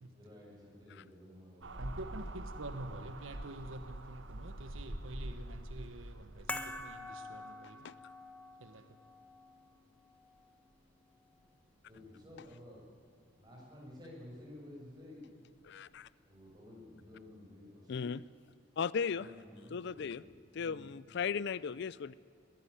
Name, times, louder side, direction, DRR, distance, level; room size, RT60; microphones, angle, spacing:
voice 1, 0.1-2.7 11.9-12.8 13.3-15.3 16.2-18.1 19.1-20.9, left 1 dB, 20° right, -3 dB, 7.1 m, -53 dB
sound 1, 1.6-6.8, right 1 dB, 65° right, 1.5 m, -45 dB
voice 2, 1.8-7.9 8.6-9.0, right 1 dB, 80° right, 9 dB, 1.3 m, -47 dB
sound 2, 6.5-12.9 13.2-13.3, left 2 dB, 5° left, 1.2 m, -47 dB
voice 3, 15.6-16.1 17.9-18.2 18.8-19.3 19.7-20.2 20.6-22.1, left 6 dB, 60° left, 19 dB, 0.4 m, -36 dB
21.0 x 13.5 x 10.0 m, 2.4 s
head